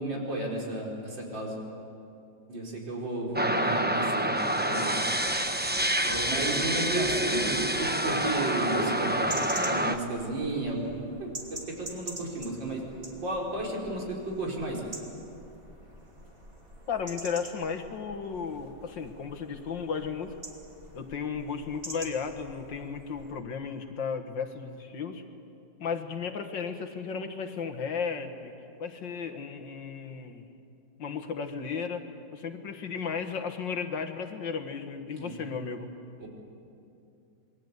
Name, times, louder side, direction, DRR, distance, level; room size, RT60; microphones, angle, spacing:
voice 1, 0.0-1.6 2.5-5.0 6.0-10.9 11.2-12.8 13.2-14.8 35.1-35.3 36.2-36.3, right 2 dB, 75° right, -1 dB, 5.3 m, -33 dB
sound 1, 3.3-10.0, right 1 dB, 10° right, 0.4 m, -27 dB
sound 2, 9.3-23.3, right 1 dB, 30° right, 3.1 m, -45 dB
voice 2, 16.9-20.3 20.9-25.2 25.8-28.5 28.8-30.5 31.0-32.0 32.3-35.9, left 6 dB, 75° left, 6 dB, 2.2 m, -34 dB
27.5 x 21.5 x 8.2 m, 2.6 s
omnidirectional pair, 2.0 m